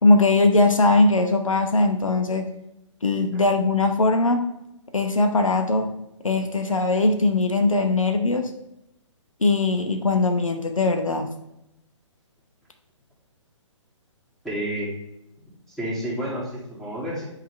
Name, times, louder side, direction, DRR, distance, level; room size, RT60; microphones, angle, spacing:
voice 1, 0.0-2.4 3.0-4.4 4.9-5.9 6.2-8.5 9.4-11.3, left 2 dB, 90° left, 5 dB, 0.9 m, -20 dB
voice 2, 14.4-14.9 15.7-17.2, equal, 5° left, -8 dB, 2.5 m, -30 dB
9.0 x 5.1 x 3.2 m, 0.86 s
figure-of-eight pair, 130°, 16 cm